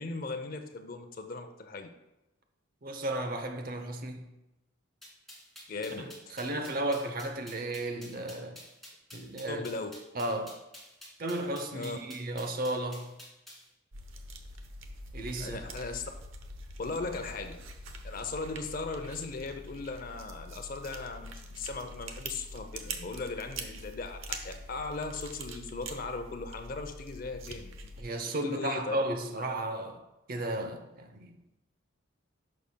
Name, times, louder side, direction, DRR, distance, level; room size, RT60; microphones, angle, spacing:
voice 1, 0.0-1.9 5.7-6.4 9.5-9.9 11.7-12.0 15.4-16.0 16.8-17.6 18.0-27.7 28.4-29.0, left 3 dB, 45° left, 0.7 m, -38 dB
voice 2, 2.8-4.3 6.0-8.6 9.1-9.6 10.1-10.6 11.2-13.2 15.1-15.6 28.0-30.0 30.3-31.4, right 1 dB, 45° right, 0.8 m, -34 dB
sound 1, 5.0-13.6, left 1 dB, ahead, 2.3 m, -49 dB
sound 2, 13.9-28.0, right 1 dB, 90° right, 0.9 m, -44 dB
11.0 x 6.4 x 2.2 m
head